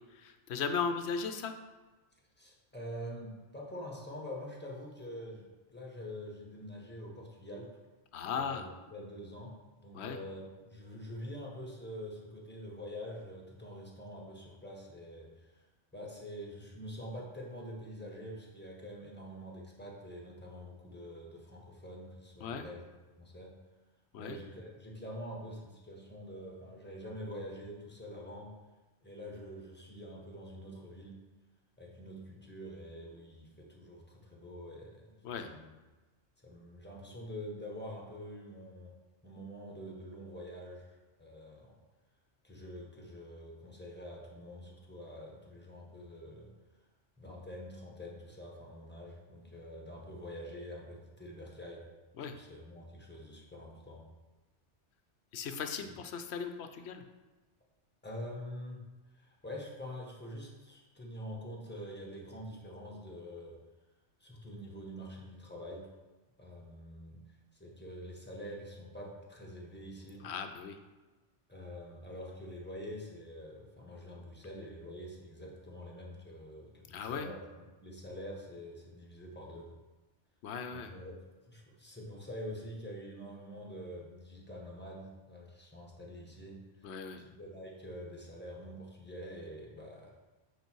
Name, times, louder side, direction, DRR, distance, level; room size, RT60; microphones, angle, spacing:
voice 1, 0.0-1.6 8.1-8.7 9.9-10.2 22.4-22.7 24.1-24.4 35.2-35.5 52.1-52.4 55.3-57.0 70.2-70.8 76.9-77.3 80.4-80.9 86.8-87.2, left 6 dB, 70° left, 7 dB, 0.9 m, -37 dB
voice 2, 2.4-7.7 8.3-9.5 9.8-15.7 15.9-22.8 23.2-23.6 24.2-28.5 29.0-31.2 31.8-35.7 36.4-38.9 39.2-41.7 42.4-46.5 47.2-51.8 52.3-54.1 58.0-58.8 59.1-63.6 64.2-65.9 66.4-67.2 67.5-70.3 71.5-77.4 77.8-79.8 80.7-81.1 81.5-86.9 87.2-90.1, equal, 10° left, -2 dB, 1.4 m, -46 dB
8.1 x 4.7 x 4.6 m, 1.2 s
omnidirectional pair, 1.2 m